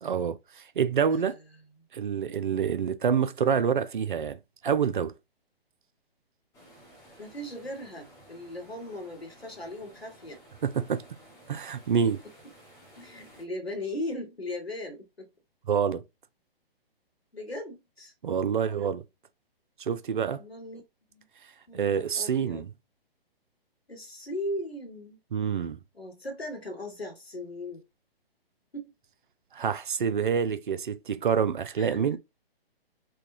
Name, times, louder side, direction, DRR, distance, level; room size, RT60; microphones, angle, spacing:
voice 1, 0.0-1.4 1.9-5.1 10.6-11.0 11.5-12.2 15.7-16.0 18.2-19.0 19.8-20.4 21.7-22.7 25.3-25.8 29.5-32.2, right 7 dB, 55° right, 0.4 m, -27 dB
sound 1, 6.5-13.4, equal, 10° left, 0.7 m, -54 dB
voice 2, 7.2-10.4 12.9-15.3 17.3-18.1 20.4-20.8 21.1-21.3 21.7-22.7 23.9-25.2 25.9-27.8 28.7-28.9 31.8-32.2, left 1 dB, 80° left, 1.4 m, -38 dB
3.5 x 2.2 x 2.6 m
figure-of-eight pair, 130°, 30 cm